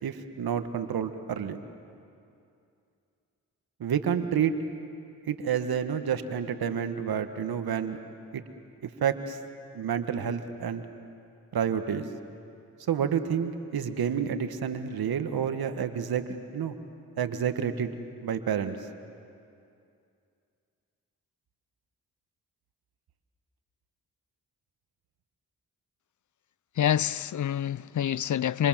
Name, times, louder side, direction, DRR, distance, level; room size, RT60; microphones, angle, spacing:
voice 1, 0.0-1.6 3.8-4.5 5.3-8.0 8.3-8.4 9.0-9.4 9.7-10.8 11.5-12.1 12.9-16.8 17.2-18.8, right 8 dB, 70° right, 1.7 m, -29 dB
voice 2, 26.8-28.7, left 10 dB, 50° left, 0.6 m, -27 dB
26.5 x 26.5 x 7.6 m
supercardioid pair, 40°, 38 cm